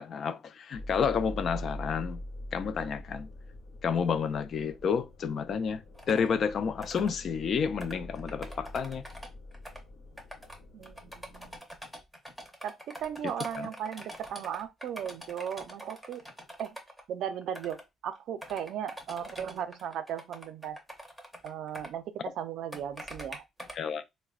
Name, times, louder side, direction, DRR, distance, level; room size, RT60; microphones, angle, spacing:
voice 1, 0.0-2.2 2.5-3.3 3.8-9.0 13.6-13.7 23.8-24.0, left 6 dB, 45° left, 0.3 m, -30 dB
sound 1, 0.7-11.6, left 1 dB, 60° left, 1.0 m, -44 dB
sound 2, 5.9-6.3 6.8-7.1 7.8-9.8 10.2-10.6 10.8-17.0 17.4-17.8 18.1-21.9 22.7-23.8, equal, ahead, 0.6 m, -45 dB
voice 2, 10.7-11.6 12.6-16.3 16.6-16.8 17.1-20.8 21.4-23.4, right 9 dB, 70° right, 0.4 m, -37 dB
3.9 x 2.1 x 2.3 m
cardioid pair, 140°, 0 cm